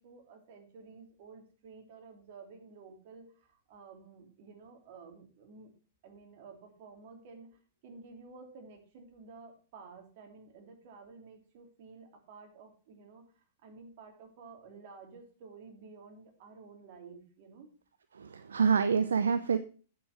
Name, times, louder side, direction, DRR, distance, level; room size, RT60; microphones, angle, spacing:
voice 1, 0.0-5.7 6.0-7.5 7.8-13.2 13.6-17.7, right 4 dB, 50° right, 3 dB, 3.2 m, -52 dB
voice 2, 18.1-19.6, right 6 dB, 75° right, 12 dB, 0.6 m, -27 dB
8.8 x 8.0 x 5.9 m, 0.39 s
figure-of-eight pair, 105°, 0 cm